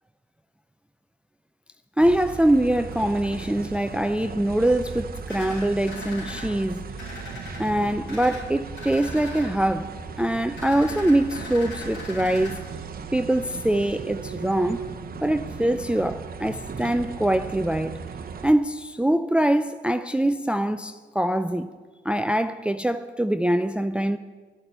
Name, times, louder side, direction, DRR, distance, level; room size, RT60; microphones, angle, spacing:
voice 1, 2.0-6.8 7.6-9.9 10.2-12.6 13.1-14.8 15.2-18.0 18.4-21.7 22.0-24.2, right 1 dB, 5° right, 0.4 m, -23 dB
sound 1, 2.0-18.5, right 5 dB, 45° right, 0.8 m, -37 dB
sound 2, 5.3-6.4 7.0-7.6 8.1-8.4 8.7-9.5 10.6-12.5, equal, 75° left, 4.7 m, -38 dB
10.0 x 7.8 x 8.1 m
hypercardioid pair, 45°, 20 cm